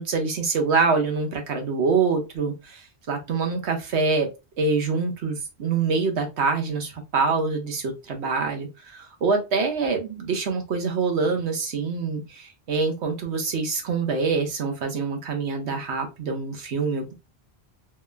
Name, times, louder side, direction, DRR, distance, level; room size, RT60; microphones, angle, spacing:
voice 1, 0.0-4.3 4.6-17.1, right 4 dB, 85° right, 4 dB, 1.2 m, -25 dB
3.4 x 3.2 x 2.3 m, 0.26 s
omnidirectional pair, 1.1 m